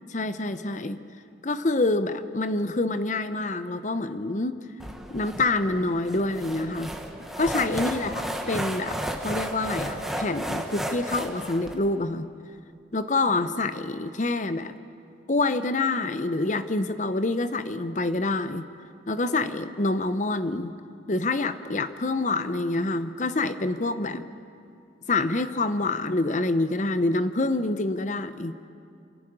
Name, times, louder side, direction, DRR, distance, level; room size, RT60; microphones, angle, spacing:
voice 1, 0.1-1.0 1.4-4.6 5.1-6.9 7.4-8.1 8.5-12.3 12.9-14.7 15.3-18.7 19.1-20.7 21.1-24.3 25.1-28.5, left 2 dB, 40° left, 11 dB, 0.8 m, -26 dB
sound 1, 4.8-11.7, equal, ahead, 1.2 m, -33 dB
27.5 x 11.5 x 8.8 m, 2.5 s
head